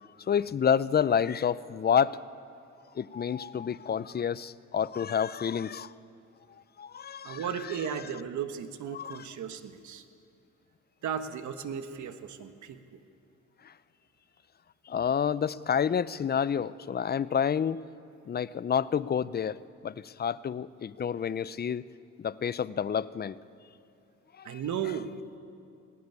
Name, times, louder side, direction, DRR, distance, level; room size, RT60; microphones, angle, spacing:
voice 1, 0.3-2.2 3.0-5.9 6.8-7.4 8.9-9.2 14.9-17.8 18.3-19.6 19.8-21.8 22.2-23.4 24.4-24.6, left 7 dB, 35° left, 18 dB, 0.6 m, -29 dB
voice 2, 7.2-10.0 11.0-13.0 24.4-25.1, right 8 dB, 70° right, 9 dB, 1.5 m, -35 dB
19.5 x 19.0 x 9.6 m, 2.6 s
cardioid pair, 90°, 30 cm